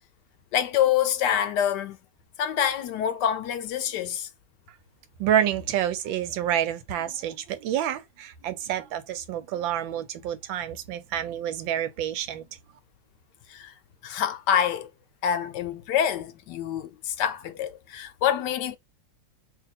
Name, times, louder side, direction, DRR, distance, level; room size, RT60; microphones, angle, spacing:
voice 1, 0.5-2.0 2.4-4.3 13.5-13.7 14.0-14.9 15.2-18.8, left 9 dB, 75° left, 1.1 m, -26 dB
voice 2, 5.2-12.5, right 10 dB, 85° right, 1.4 m, -28 dB
2.8 x 2.7 x 4.0 m
omnidirectional pair, 2.0 m